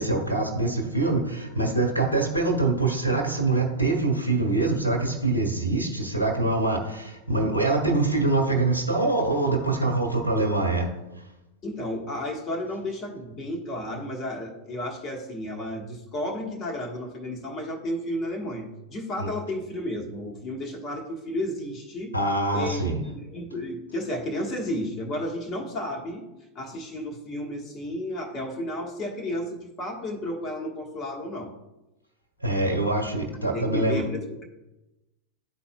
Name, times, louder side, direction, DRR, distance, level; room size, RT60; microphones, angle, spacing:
voice 1, 0.0-10.9 19.2-19.3 22.1-23.0 32.4-34.0, right 2 dB, 85° left, 1 dB, 1.2 m, -24 dB
voice 2, 11.6-22.1 22.5-26.3 26.5-31.5 33.5-34.4, left 1 dB, 30° left, 1 dB, 1.3 m, -32 dB
11.0 x 4.2 x 2.2 m, 0.99 s
figure-of-eight pair, 90°, 0 cm